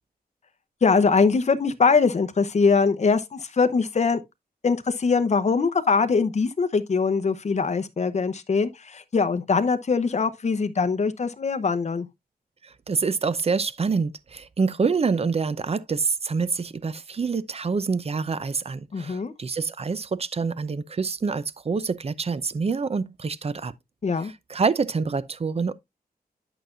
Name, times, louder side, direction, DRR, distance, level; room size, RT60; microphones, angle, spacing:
voice 1, 0.8-4.2 4.6-12.1 18.9-19.3 24.0-24.3, left 4 dB, 45° left, 0.8 m, -22 dB
voice 2, 12.6-23.7 24.5-25.7, right 5 dB, 40° right, 0.6 m, -26 dB
11.0 x 5.9 x 2.5 m
wide cardioid pair, 130°, 16 cm